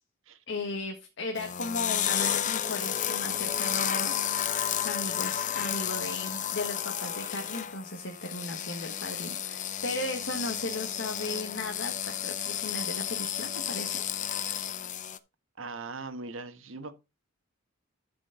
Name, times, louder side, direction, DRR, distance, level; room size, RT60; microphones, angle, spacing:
voice 1, 0.5-4.1 4.7-14.0, left 2 dB, 65° left, 1.6 m, -36 dB
sound 1, 1.4-15.2, left 10 dB, 40° left, 0.6 m, -32 dB
voice 2, 15.6-16.9, right 3 dB, 75° right, 1.3 m, -40 dB
12.0 x 5.3 x 3.8 m
head